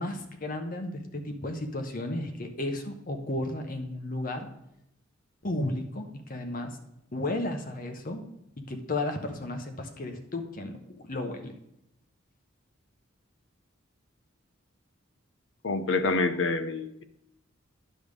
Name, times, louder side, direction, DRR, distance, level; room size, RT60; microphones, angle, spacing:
voice 1, 0.0-4.5 5.4-6.8 7.1-8.2 8.6-10.8 11.0-11.5, left 1 dB, 45° left, 6 dB, 1.0 m, -33 dB
voice 2, 15.6-17.0, left 3 dB, 65° left, 10 dB, 0.7 m, -27 dB
10.0 x 3.5 x 6.3 m, 0.79 s
head